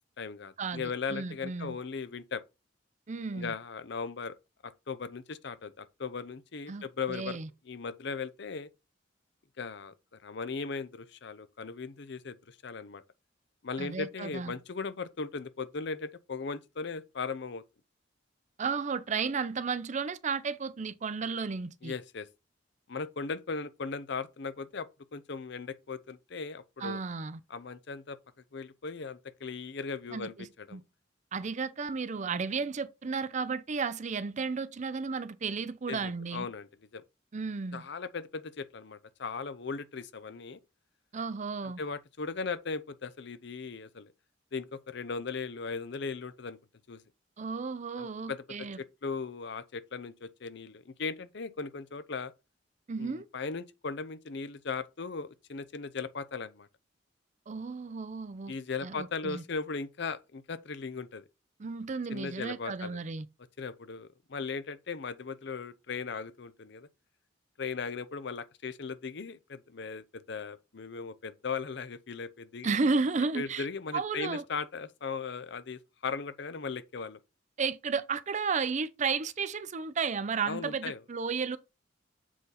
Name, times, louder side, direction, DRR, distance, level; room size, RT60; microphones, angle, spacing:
voice 1, 0.2-2.4 3.3-4.4 4.6-7.4 7.7-8.7 9.6-13.0 13.6-17.6 21.8-22.3 22.9-27.0 27.5-28.2 28.5-30.8 35.9-37.0 37.7-40.6 41.6-44.1 44.5-46.6 46.9-47.0 48.0-52.3 53.0-56.7 58.5-61.2 62.1-63.0 63.6-66.9 67.6-72.8 73.3-77.2 80.5-81.0, left 4 dB, 65° left, 0.6 m, -38 dB
voice 2, 1.1-1.8 3.1-3.5 6.7-7.5 13.8-14.5 18.6-21.9 26.8-27.4 30.1-30.8 31.3-36.5 37.3-37.8 41.1-41.8 47.4-48.8 52.9-53.3 57.5-58.5 58.8-59.4 61.6-63.3 72.6-73.7 73.9-74.4 77.6-81.6, right 5 dB, 40° right, 0.5 m, -33 dB
7.5 x 4.0 x 4.1 m
head